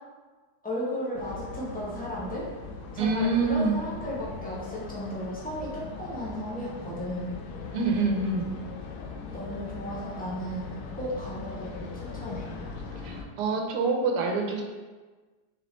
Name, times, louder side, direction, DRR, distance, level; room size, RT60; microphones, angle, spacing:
voice 1, 0.6-2.5 2.9-7.3 7.6-7.7 9.3-12.5, equal, 10° left, -6 dB, 0.4 m, -35 dB
sound 1, 1.1-13.2, left 4 dB, 75° left, 1.1 m, -40 dB
voice 2, 3.0-3.7 7.7-8.5 13.0-14.6, right 3 dB, 85° right, 2 dB, 1.2 m, -26 dB
4.6 x 3.0 x 3.1 m, 1.4 s
omnidirectional pair, 1.8 m